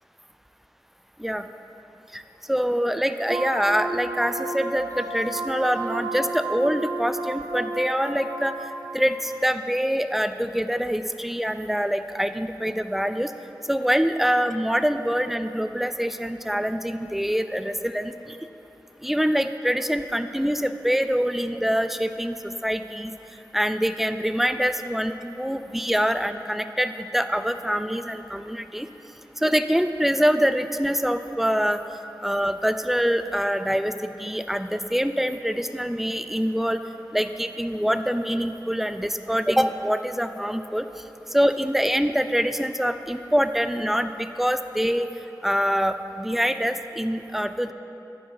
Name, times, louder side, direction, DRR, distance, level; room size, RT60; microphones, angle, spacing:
voice 1, 2.5-8.5 8.9-13.3 13.7-18.4 19.0-23.1 23.5-28.9 29.4-31.8 32.2-36.8 37.1-40.8 41.3-45.1 45.4-47.7, equal, 5° right, 10 dB, 0.4 m, -25 dB
sound 1, 3.3-9.0, right 2 dB, 50° right, 0.6 m, -32 dB
9.9 x 4.8 x 5.7 m, 2.9 s
wide cardioid pair, 50°, 8 cm